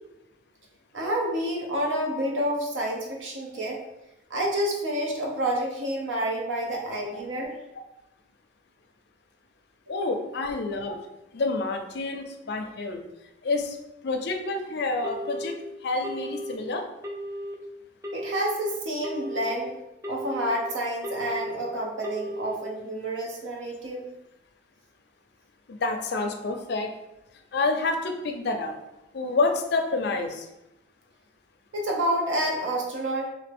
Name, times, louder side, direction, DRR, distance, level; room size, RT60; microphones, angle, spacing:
voice 1, 0.9-3.8 4.3-7.6 10.0-10.1 18.1-19.7 20.1-24.1 31.7-33.3, right 1 dB, 85° right, -1 dB, 0.8 m, -29 dB
voice 2, 9.9-11.0 11.3-13.0 13.4-13.8 14.0-15.6 15.8-16.9 25.7-26.9 27.5-28.7 29.1-30.5, left 3 dB, 60° left, 5 dB, 0.4 m, -28 dB
Telephone, 15.0-15.5 16.0-16.5 17.0-17.5 18.0-18.5 19.0-19.5 20.0-20.5 21.0-21.5 22.0-22.5, equal, 15° right, 0.4 m, -35 dB
3.3 x 2.7 x 3.4 m, 0.93 s
head